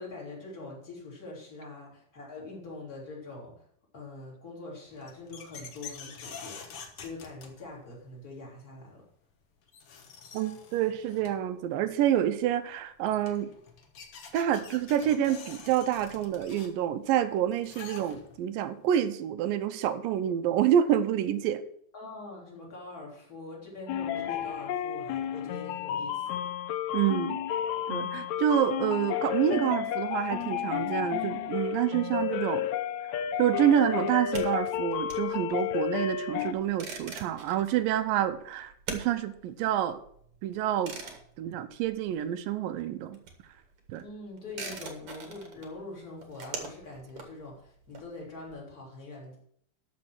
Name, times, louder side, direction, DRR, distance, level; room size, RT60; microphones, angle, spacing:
voice 1, 0.0-3.7 3.9-9.0 21.9-26.4 44.0-49.4, left 2 dB, 25° left, -3 dB, 3.7 m, -44 dB
sound 1, 4.9-8.0 9.3-9.4 9.7-11.5 12.7-12.8 13.0-18.5, left 6 dB, 60° left, 1.5 m, -47 dB
voice 2, 10.3-13.5 14.3-21.6 26.9-27.4 27.9-32.7 33.4-40.0 40.4-41.0 41.4-43.2 43.9-44.0, right 10 dB, 80° right, 11 dB, 2.3 m, -28 dB
sound 2, 23.9-36.5, left 10 dB, 80° left, 1.6 m, -32 dB
sound 3, 34.1-42.5 42.7-48.5, right 4 dB, 50° right, 2.0 m, -44 dB
13.0 x 5.3 x 6.2 m, 0.64 s
omnidirectional pair, 4.2 m